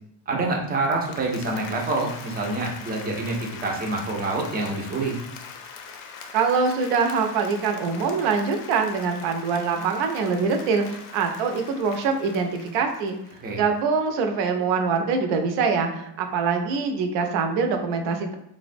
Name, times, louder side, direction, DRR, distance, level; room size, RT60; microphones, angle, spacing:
voice 1, 0.3-5.1 13.4-13.6, right 2 dB, 25° right, 0 dB, 0.4 m, -27 dB
Applause, 0.7-13.8, left 6 dB, 85° left, 0.5 m, -42 dB
voice 2, 6.3-13.2 13.5-18.3, right 5 dB, 80° right, 5 dB, 0.6 m, -24 dB
3.2 x 2.1 x 2.5 m, 0.79 s
cardioid pair, 145°, 42 cm